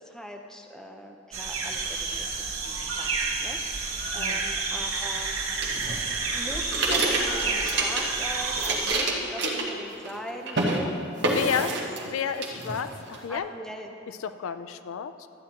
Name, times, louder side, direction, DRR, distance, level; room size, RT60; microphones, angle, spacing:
voice 1, 0.0-2.3 2.6-5.4 6.3-11.8 13.3-13.9, equal, ahead, 2 dB, 0.5 m, -40 dB
sound 1, 1.3-9.0, right 4 dB, 75° right, 1.2 m, -30 dB
sound 2, 5.6-8.2 8.5-10.2 10.5-10.8 11.2-12.1 12.4-13.2, right 2 dB, 50° right, 1.1 m, -28 dB
voice 2, 11.3-11.7 12.1-13.5 14.1-15.3, left 7 dB, 70° left, 11 dB, 0.3 m, -31 dB
13.0 x 9.1 x 2.9 m, 2.6 s
head